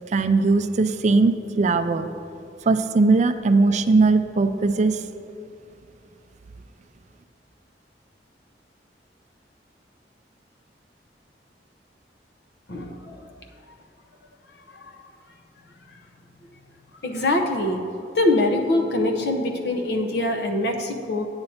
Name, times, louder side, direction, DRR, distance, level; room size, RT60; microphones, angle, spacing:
voice 1, 0.1-2.1 2.6-5.0, right 3 dB, 40° right, 10 dB, 0.4 m, -19 dB
voice 2, 12.7-13.2 14.7-14.8 17.0-17.8 18.1-21.3, left 1 dB, 70° left, 3 dB, 0.8 m, -23 dB
8.8 x 8.7 x 4.2 m, 2.6 s
head